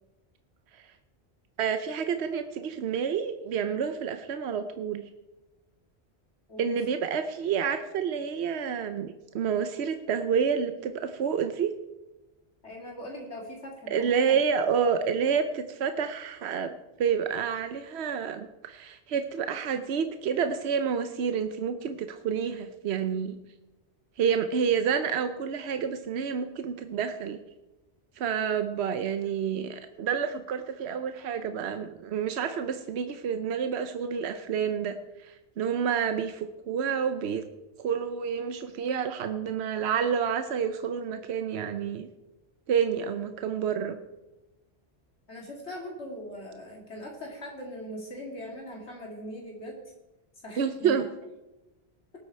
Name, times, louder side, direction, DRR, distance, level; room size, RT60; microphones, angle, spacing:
voice 1, 1.6-5.0 6.6-11.7 13.9-16.7 17.0-23.4 24.2-27.4 28.2-37.4 37.8-42.1 42.7-44.0 50.6-51.0, right 7 dB, 75° right, 9 dB, 1.0 m, -29 dB
voice 2, 12.6-14.4 45.3-49.9 50.4-51.1, equal, 90° left, -1 dB, 3.1 m, -40 dB
19.0 x 8.1 x 4.4 m, 1.0 s
omnidirectional pair, 1.1 m